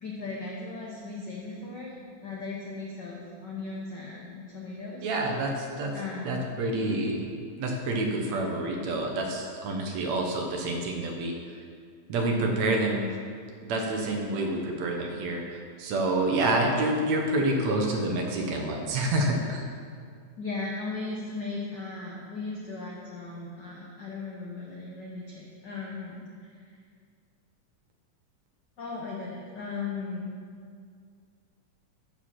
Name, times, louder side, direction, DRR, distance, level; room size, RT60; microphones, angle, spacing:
voice 1, 0.0-5.1 5.9-6.6 20.4-26.5 28.8-30.3, left 3 dB, 80° left, -3 dB, 0.9 m, -37 dB
voice 2, 5.0-5.9 6.2-7.2 7.6-11.3 12.1-13.1 13.6-19.7, right 2 dB, 70° right, 1 dB, 2.2 m, -28 dB
13.0 x 5.0 x 5.8 m, 2.1 s
omnidirectional pair, 3.5 m